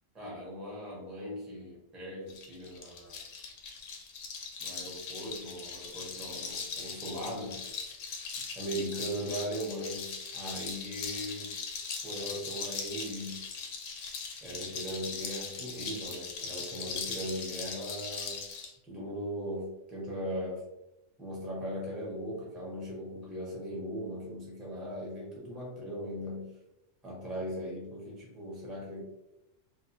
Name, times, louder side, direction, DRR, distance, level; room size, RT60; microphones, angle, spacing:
voice 1, 0.1-3.2 4.6-7.6 8.5-11.5 12.0-13.7 14.4-18.5 18.9-20.6 21.2-26.6 27.0-29.0, equal, ahead, -4 dB, 0.4 m, -39 dB
sound 1, 2.3-18.7, left 5 dB, 75° left, 0.9 m, -40 dB
2.7 x 2.1 x 2.5 m, 0.92 s
omnidirectional pair, 1.3 m